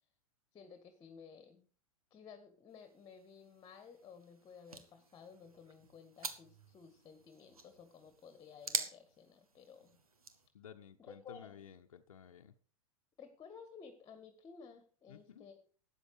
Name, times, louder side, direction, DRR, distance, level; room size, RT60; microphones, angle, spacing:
voice 1, 0.5-1.7 2.1-10.0 11.0-11.6 13.2-15.7, left 6 dB, 20° left, 9 dB, 1.7 m, -55 dB
sound 1, 2.7-10.5, right 4 dB, 80° right, 1.6 m, -46 dB
voice 2, 10.5-12.5 15.1-15.5, left 8 dB, 70° left, 6 dB, 0.9 m, -54 dB
13.0 x 9.2 x 4.9 m, 0.42 s
figure-of-eight pair, 95°, 18 cm